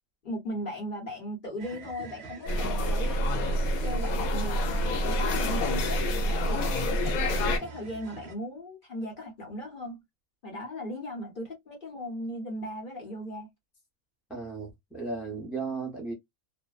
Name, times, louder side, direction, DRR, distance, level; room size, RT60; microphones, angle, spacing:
voice 1, 0.2-3.2 3.8-6.0 6.3-10.0 10.4-13.5, equal, 40° left, 1.0 m, -37 dB
sound 1, 1.6-8.4, right 4 dB, 60° right, 0.8 m, -45 dB
sound 2, 2.5-7.6, equal, 85° left, 1.1 m, -27 dB
voice 2, 14.3-16.1, right 4 dB, ahead, 0.5 m, -35 dB
2.6 x 2.1 x 2.3 m
omnidirectional pair, 1.5 m